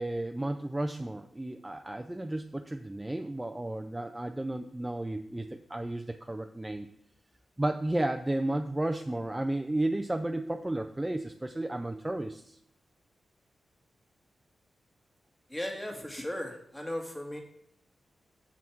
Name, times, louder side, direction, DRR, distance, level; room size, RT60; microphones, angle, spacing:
voice 1, 0.0-6.9 7.6-12.6, right 1 dB, 10° right, 6 dB, 0.4 m, -33 dB
voice 2, 15.5-17.4, left 1 dB, 10° left, 2 dB, 1.6 m, -36 dB
7.1 x 6.2 x 4.5 m, 0.75 s
wide cardioid pair, 135°, 0 cm